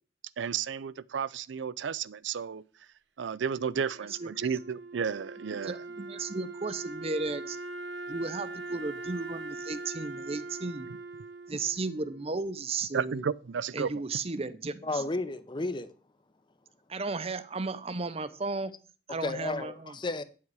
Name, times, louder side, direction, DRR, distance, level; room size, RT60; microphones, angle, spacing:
voice 1, 0.4-2.6 3.2-5.8 12.9-13.9, right 6 dB, 90° right, 0.5 m, -32 dB
Wind instrument woodwind instrument, 3.7-12.8, right 3 dB, 75° right, 0.8 m, -42 dB
voice 2, 5.6-7.6 8.1-10.9 11.5-13.2 13.7-15.0 16.9-18.7 19.1-19.9, right 3 dB, 35° right, 0.7 m, -34 dB
voice 3, 14.8-15.9 19.2-20.2, left 2 dB, 25° left, 0.7 m, -33 dB
9.4 x 7.5 x 4.7 m
head